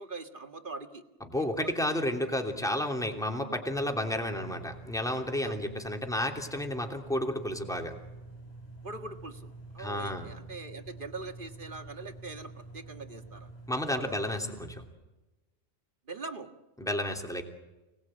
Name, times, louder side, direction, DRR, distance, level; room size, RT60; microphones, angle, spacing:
voice 1, 0.0-1.0 1.5-1.7 5.4-5.6 8.8-9.5 9.7-13.5 13.9-14.2 16.1-16.5, right 3 dB, 50° right, 6 dB, 2.0 m, -42 dB
voice 2, 1.2-7.9 9.8-10.3 13.7-14.8 16.8-17.4, left 1 dB, 5° left, 3 dB, 2.9 m, -31 dB
sound 1, 3.7-14.9, right 2 dB, 40° left, 3.8 m, -48 dB
29.5 x 19.5 x 8.9 m, 1.1 s
omnidirectional pair, 1.1 m